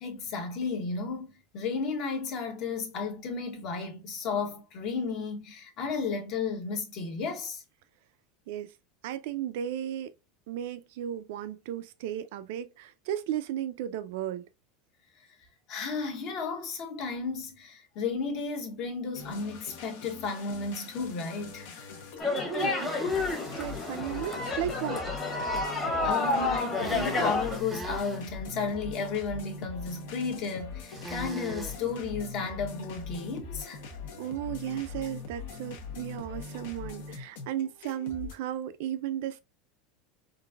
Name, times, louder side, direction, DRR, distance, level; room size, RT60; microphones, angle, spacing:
voice 1, 0.0-7.6 15.7-21.7 26.0-33.8, left 4 dB, 45° left, 0.9 m, -33 dB
voice 2, 9.0-10.1 10.5-14.4 22.4-23.1 23.6-25.1 34.2-39.4, right 11 dB, 70° right, 0.4 m, -35 dB
sound 1, 19.1-38.3, left 5 dB, 75° left, 0.9 m, -42 dB
sound 2, 22.2-27.6, left 3 dB, 20° left, 1.0 m, -30 dB
sound 3, 22.7-24.2 26.7-28.2 30.9-31.8, right 3 dB, 15° right, 0.5 m, -42 dB
3.9 x 2.5 x 2.2 m
supercardioid pair, 150°, 0 cm